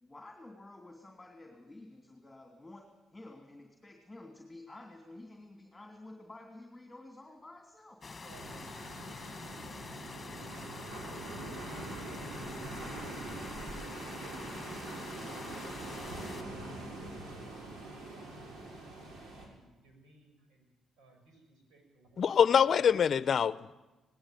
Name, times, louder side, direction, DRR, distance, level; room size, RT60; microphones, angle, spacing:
voice 1, 0.0-8.0, left 2 dB, 10° left, 2.9 m, -51 dB
sound 1, 8.0-16.4, left 4 dB, 30° left, 1.5 m, -46 dB
voice 2, 8.1-8.7 9.0-13.9 14.2-14.4 15.9-20.7 21.0-22.4 22.7-22.8, right 2 dB, 90° right, 6.9 m, -61 dB
sound 2, 8.3-19.5, right 2 dB, 75° right, 6.0 m, -43 dB
voice 3, 22.2-23.7, left 7 dB, 55° left, 0.7 m, -25 dB
18.5 x 17.5 x 9.2 m
cardioid pair, 90°, 0 cm